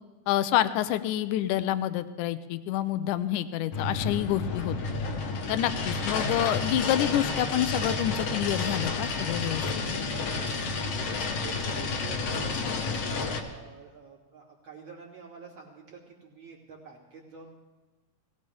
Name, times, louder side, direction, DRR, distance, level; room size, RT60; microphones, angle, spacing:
voice 1, 0.3-4.8 5.5-9.7, left 12 dB, 80° left, 13 dB, 2.0 m, -28 dB
sound 1, 3.7-13.4, left 4 dB, 60° left, 1.9 m, -30 dB
voice 2, 10.3-17.5, right 5 dB, 40° right, -3 dB, 3.0 m, -46 dB
18.5 x 17.0 x 3.4 m, 1.2 s
omnidirectional pair, 3.7 m